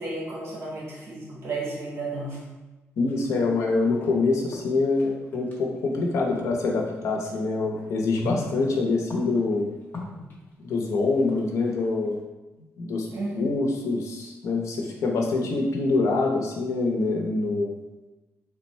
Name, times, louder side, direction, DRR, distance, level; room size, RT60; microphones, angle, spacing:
voice 1, 0.0-2.4 13.1-13.5, right 2 dB, 55° right, -5 dB, 1.1 m, -32 dB
voice 2, 3.0-9.7 10.6-12.2 12.8-13.1 13.3-17.8, left 3 dB, 80° left, 0 dB, 0.6 m, -25 dB
sound 1, 3.0-4.2 4.5-7.4 7.8-12.2, left 2 dB, 35° left, 0.8 m, -38 dB
3.3 x 2.2 x 4.2 m, 1.1 s
wide cardioid pair, 145°, 5 cm